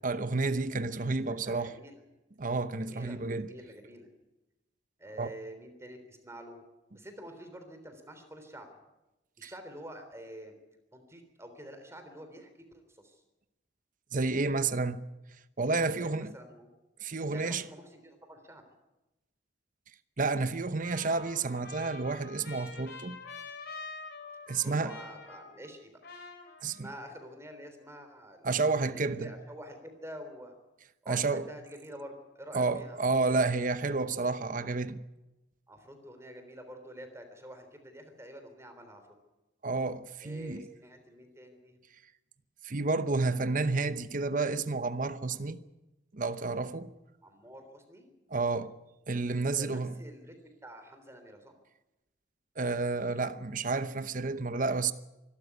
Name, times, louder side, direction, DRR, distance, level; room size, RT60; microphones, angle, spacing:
voice 1, 0.0-1.7 2.4-3.5 5.2-5.3 9.4-9.5 14.1-15.0 15.6-16.3 17.0-17.6 20.2-23.2 24.5-24.9 26.6-26.9 28.4-29.3 31.1-31.4 32.5-35.0 39.6-40.6 42.6-45.6 46.1-46.9 48.3-48.7 49.1-49.9 52.6-54.9, right 3 dB, 45° right, 0.9 m, -30 dB
voice 2, 1.2-2.0 2.8-4.1 5.0-6.6 6.9-8.7 9.4-10.5 10.9-13.2 16.0-16.7 17.3-18.6 24.5-25.9 26.8-28.5 28.9-30.5 31.0-33.0 35.7-39.1 40.2-41.8 47.2-48.1 49.6-50.3 50.6-51.6, equal, 15° right, 3.4 m, -48 dB
Trumpet, 20.8-25.8 26.0-27.0, left 4 dB, 60° left, 4.2 m, -46 dB
24.0 x 13.0 x 9.6 m
head